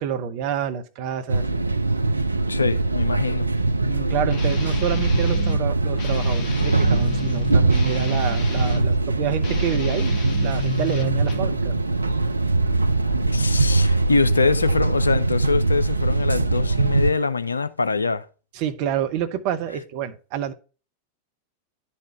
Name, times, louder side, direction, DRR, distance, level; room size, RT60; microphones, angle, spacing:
voice 1, 0.0-1.4 3.9-10.1 10.4-11.7 18.5-20.5, right 8 dB, 45° right, 0.9 m, -28 dB
sound 1, 1.3-17.1, right 2 dB, 80° right, 0.4 m, -22 dB
voice 2, 2.5-3.5 13.3-18.2, left 4 dB, 80° left, 0.5 m, -24 dB
Guitar, 4.3-5.6 6.0-8.9 9.4-11.5, left 5 dB, 35° left, 1.5 m, -33 dB
10.5 x 4.4 x 4.5 m
figure-of-eight pair, 90°, 0 cm